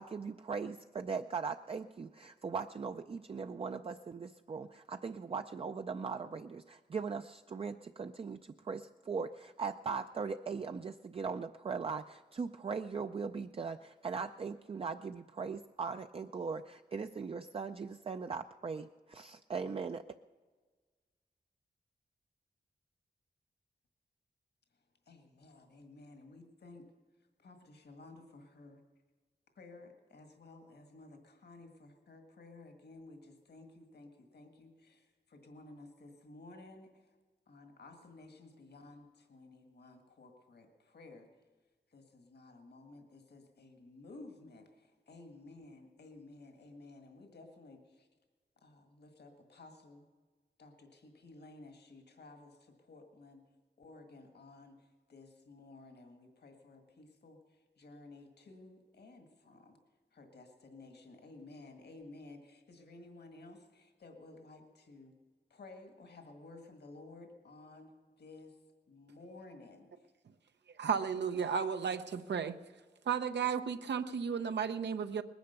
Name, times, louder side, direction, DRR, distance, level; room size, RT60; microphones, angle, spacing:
voice 1, 0.0-20.0, right 5 dB, 35° right, 7 dB, 0.4 m, -39 dB
voice 2, 25.1-26.8 27.4-28.8 29.6-37.1 37.5-41.3 41.9-48.1 48.6-50.1 50.6-53.4 53.8-59.8 60.1-65.1 65.5-68.6 68.9-70.1, left 2 dB, 70° left, 4 dB, 1.8 m, -55 dB
voice 3, 70.8-72.5 73.1-75.2, right 6 dB, 85° right, 9 dB, 0.7 m, -33 dB
20.0 x 10.5 x 6.7 m, 1.4 s
wide cardioid pair, 135°, 17 cm